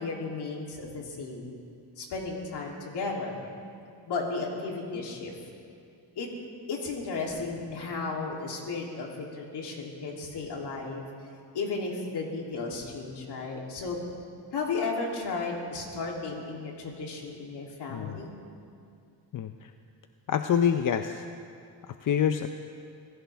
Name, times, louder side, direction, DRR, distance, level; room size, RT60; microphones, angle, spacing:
voice 1, 0.0-1.6 2.0-3.4 4.1-5.3 6.1-6.3 6.7-11.1 11.5-14.0 14.5-18.3, left 3 dB, 65° left, -1 dB, 3.2 m, -34 dB
voice 2, 19.3-19.7 20.3-21.2 21.9-22.5, left 8 dB, 50° left, 8 dB, 0.6 m, -26 dB
25.0 x 16.0 x 3.5 m, 2.4 s
cardioid pair, 105°, 43 cm